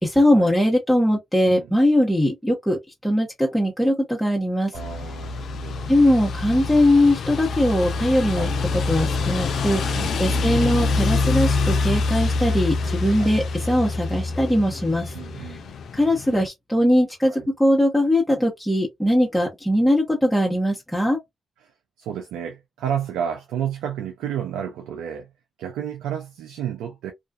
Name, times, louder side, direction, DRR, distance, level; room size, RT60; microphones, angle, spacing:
voice 1, 0.0-4.7 5.9-15.1 15.9-21.2, left 1 dB, 5° left, 0.9 m, -21 dB
sound 1, 4.7-16.5, left 4 dB, 70° left, 0.4 m, -25 dB
voice 2, 4.7-5.9 8.3-8.5 9.9-10.5 13.1-13.4 15.1-15.7 17.3-17.4 21.6-21.7 22.0-25.3 25.6-27.1, right 9 dB, 90° right, 0.3 m, -31 dB
2.4 x 2.3 x 2.3 m
supercardioid pair, 45°, 0 cm